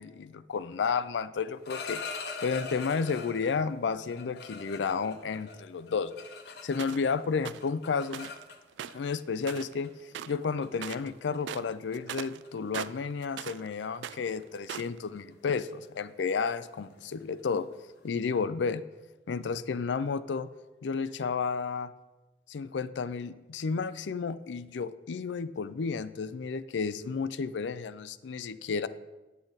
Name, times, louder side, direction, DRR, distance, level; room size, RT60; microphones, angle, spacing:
voice 1, 0.0-2.0 2.4-6.1 6.6-8.3 8.9-9.9 10.3-17.7 18.0-18.8 19.3-20.5 20.8-21.9 22.5-28.9, left 5 dB, 80° left, 14 dB, 0.4 m, -32 dB
sound 1, 1.5-3.6 4.1-7.1 7.4-8.9 9.8-10.0 10.3-10.7 11.1-11.4 11.7-11.9 12.2-12.5 12.7-18.1, left 4 dB, 65° left, 0.9 m, -43 dB
sound 2, 6.8-7.1 7.4-7.7 8.1-8.4 8.7-9.8 10.1-10.5 10.7-11.1 11.4-13.7 13.9-15.0, right 9 dB, 85° right, 0.3 m, -40 dB
8.8 x 8.2 x 4.0 m, 1.1 s
head